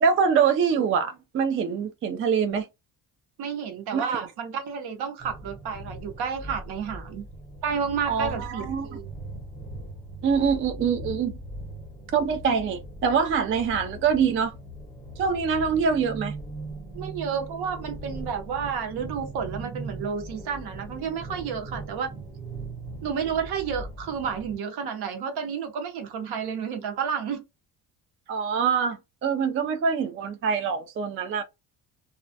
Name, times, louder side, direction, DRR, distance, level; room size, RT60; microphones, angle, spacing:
voice 1, 0.0-2.7 3.9-4.2 8.1-8.9 10.2-11.4 12.1-14.5 15.2-16.3 28.3-31.4, right 6 dB, 35° right, 0.4 m, -24 dB
voice 2, 3.4-7.3 7.6-9.1 16.9-22.1 23.0-27.4, right 6 dB, 70° right, 0.9 m, -31 dB
sound 1, 5.2-24.6, right 1 dB, 10° left, 0.9 m, -40 dB
2.4 x 2.1 x 2.5 m
cardioid pair, 145°, 41 cm